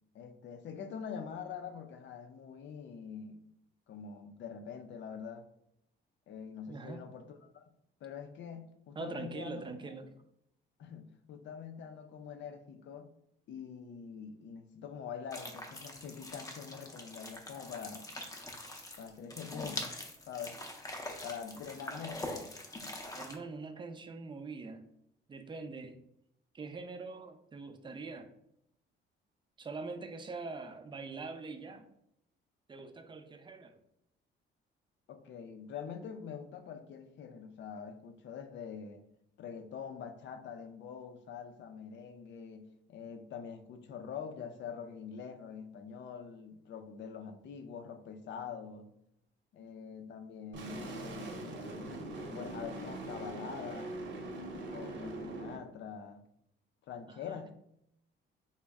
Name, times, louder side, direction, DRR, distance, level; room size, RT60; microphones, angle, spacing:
voice 1, 0.1-3.4 3.9-5.5 6.3-7.6 8.0-9.9 10.8-13.1 13.5-18.1 19.0-19.9 20.3-20.6 21.2-22.5 35.1-39.0 39.4-48.9 49.5-51.6 52.3-53.9 54.6-56.2 56.9-57.5, left 7 dB, 60° left, 7 dB, 0.5 m, -45 dB
voice 2, 6.7-7.0 9.0-10.1 23.2-24.9 25.3-26.0 26.5-28.3 29.6-31.9 32.7-33.8 57.1-57.4, right 3 dB, 25° right, 8 dB, 0.4 m, -43 dB
sound 1, 15.3-23.3, left 1 dB, 15° left, 0.6 m, -43 dB
sound 2, 50.5-55.6, right 2 dB, 65° right, 0.8 m, -42 dB
4.1 x 2.1 x 3.5 m, 0.77 s
cardioid pair, 100°, 21 cm